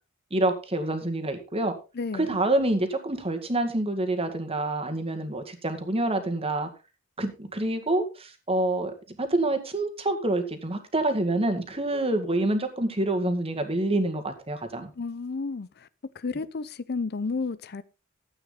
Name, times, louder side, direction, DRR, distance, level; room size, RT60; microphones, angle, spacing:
voice 1, 0.3-1.7 2.1-6.7 7.2-8.9 9.2-14.9, right 2 dB, 30° right, 6 dB, 2.0 m, -27 dB
voice 2, 1.9-2.4 15.0-15.9 16.1-17.8, left 4 dB, 50° left, 17 dB, 0.6 m, -32 dB
13.0 x 8.8 x 4.0 m, 0.29 s
head